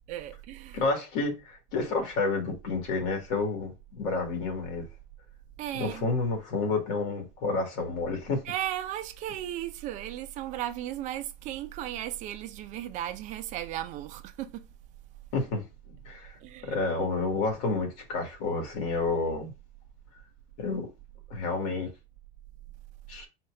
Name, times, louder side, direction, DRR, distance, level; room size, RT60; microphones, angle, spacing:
voice 1, 0.1-0.8 5.6-6.0 8.4-14.7 16.4-16.8, right 12 dB, 35° right, 0.5 m, -36 dB
voice 2, 0.7-4.9 5.8-8.4 15.3-15.6 16.1-16.3 16.6-19.5 20.6-20.9 21.3-21.9 23.1-23.3, left 3 dB, 70° left, 2.2 m, -30 dB
4.3 x 2.4 x 4.7 m
cardioid pair, 170°, 21 cm